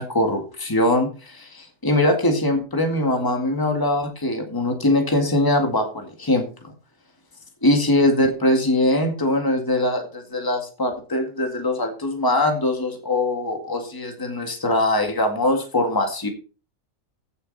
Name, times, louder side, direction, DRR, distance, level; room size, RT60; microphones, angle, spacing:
voice 1, 0.0-6.7 7.6-16.3, left 1 dB, 15° left, 4 dB, 1.9 m, -22 dB
16.0 x 6.8 x 4.1 m, 0.35 s
omnidirectional pair, 1.5 m